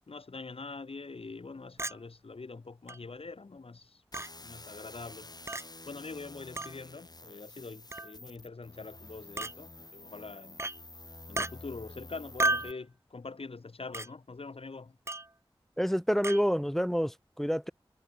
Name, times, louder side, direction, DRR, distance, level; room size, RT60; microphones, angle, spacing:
voice 1, 0.1-4.0 4.4-5.3 5.8-10.7 11.3-15.0, left 3 dB, 80° left, 4.3 m, -44 dB
Chink clink, 1.8-2.0 2.9-3.0 4.1-4.3 5.5-5.6 6.6-6.7 7.9-8.1 9.4-9.5 10.6-10.8 11.4-11.5 12.4-12.8 13.9-14.1 15.1-15.3 16.2-16.4, right 2 dB, 30° right, 0.8 m, -32 dB
sound 1, 4.1-12.7, left 2 dB, 45° left, 2.9 m, -50 dB
voice 2, 15.8-17.7, equal, 5° left, 0.4 m, -28 dB
wide cardioid pair, 45°, 10 cm